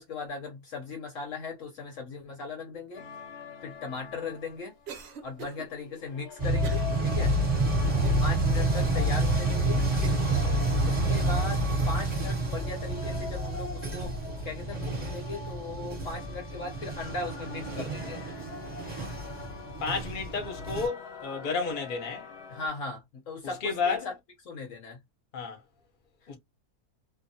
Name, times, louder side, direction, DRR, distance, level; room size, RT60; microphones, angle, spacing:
voice 1, 0.0-3.0 3.6-4.7 5.2-7.3 8.2-9.8 10.9-18.2 22.5-24.0 24.5-25.0, left 3 dB, 60° left, 1.0 m, -38 dB
sound 1, 2.9-22.7, left 6 dB, 90° left, 1.3 m, -45 dB
Cough, 4.9-5.7 6.6-6.9 7.4-7.5 8.0-8.7 9.3-9.4 10.0-10.3, right 5 dB, 55° right, 0.7 m, -43 dB
sound 2, 6.4-20.9, right 1 dB, 20° right, 1.1 m, -28 dB
voice 2, 7.9-8.2 19.8-22.3 23.6-24.1 25.3-25.6 26.3-26.4, left 5 dB, 40° left, 0.8 m, -32 dB
2.6 x 2.1 x 2.6 m
omnidirectional pair, 1.7 m